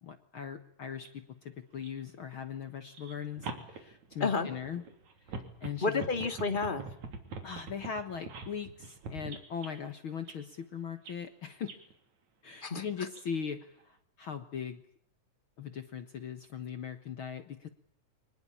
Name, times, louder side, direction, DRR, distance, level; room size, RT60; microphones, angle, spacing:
voice 1, 0.0-4.8 5.2-6.0 7.4-11.7 12.4-14.8 15.6-17.7, left 7 dB, 55° left, 10 dB, 1.6 m, -40 dB
sound 1, 1.1-1.2 1.7-1.9 2.9-9.7 10.2-10.4 11.1-11.2 11.7-11.9 13.1-13.2 13.8-13.9, right 4 dB, 60° right, 4.4 m, -44 dB
voice 2, 5.8-6.8 12.6-12.8, left 4 dB, 20° left, 9 dB, 1.9 m, -30 dB
25.5 x 19.5 x 8.7 m, 0.68 s
omnidirectional pair, 3.8 m